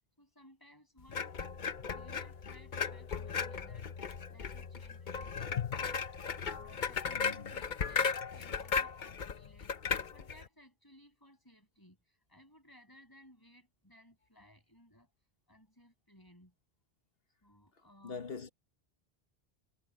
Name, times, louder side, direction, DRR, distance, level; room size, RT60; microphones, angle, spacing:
voice 1, 0.2-1.5 1.8-5.7 6.4-15.1 15.5-16.5 17.4-18.3, equal, 20° left, 7.2 m, -61 dB
sound 1, 1.1-10.5, left 6 dB, 50° left, 1.0 m, -36 dB
voice 2, 7.1-7.5 18.0-18.5, left 5 dB, 65° left, 1.5 m, -42 dB
omnidirectional pair, 1.1 m